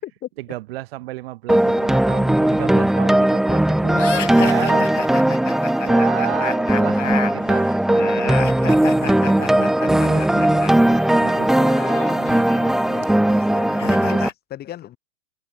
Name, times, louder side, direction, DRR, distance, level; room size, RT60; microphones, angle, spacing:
voice 1, 0.4-4.9 5.1-5.5 5.8-12.4 13.0-13.1, right 17 dB, 55° right, 6.5 m, -33 dB
sound 1, 1.5-14.3, right 1 dB, ahead, 0.5 m, -18 dB
sound 2, 3.9-10.7 11.0-14.3, left 8 dB, 85° left, 2.4 m, -32 dB
voice 2, 12.6-15.0, left 12 dB, 25° left, 4.3 m, -37 dB
hypercardioid pair, 120°, 36 cm